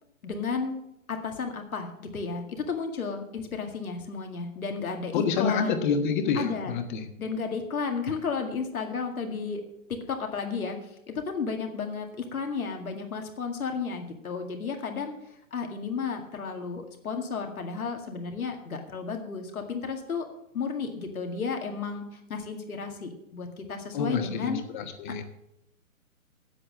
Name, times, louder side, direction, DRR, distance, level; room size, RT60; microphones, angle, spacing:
voice 1, 0.2-0.8 1.1-5.8 6.3-6.7 7.2-9.6 9.9-10.8 11.1-15.1 15.5-20.3 20.5-22.0 22.3-24.6, left 5 dB, 80° left, 4 dB, 2.1 m, -33 dB
voice 2, 5.1-7.0 23.9-25.2, left 5 dB, 35° left, 7 dB, 1.2 m, -28 dB
8.5 x 7.9 x 7.6 m, 0.80 s
hypercardioid pair, 145°, 42 cm